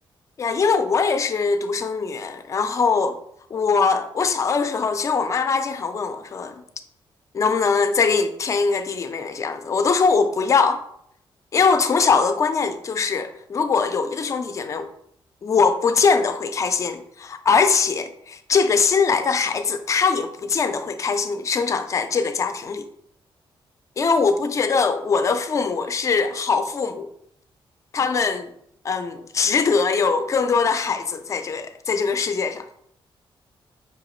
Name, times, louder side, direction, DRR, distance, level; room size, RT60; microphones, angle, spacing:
voice 1, 0.4-3.2 3.5-6.6 7.3-10.8 11.5-14.9 15.4-22.9 24.0-27.1 27.9-28.5 28.8-32.7, left 5 dB, 35° left, 0.4 m, -22 dB
5.5 x 2.8 x 3.1 m
wide cardioid pair, 155°, 9 cm